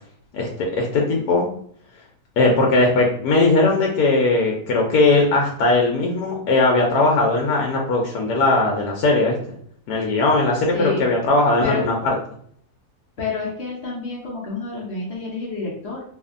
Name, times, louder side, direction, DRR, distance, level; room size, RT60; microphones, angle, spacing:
voice 1, 0.8-1.5 2.4-9.4 9.9-12.1, left 2 dB, 85° left, 0 dB, 1.1 m, -19 dB
voice 2, 10.7-11.1 11.6-11.8 13.2-16.0, left 4 dB, 55° left, -4 dB, 0.8 m, -28 dB
2.7 x 2.5 x 2.4 m, 0.62 s
omnidirectional pair, 1.6 m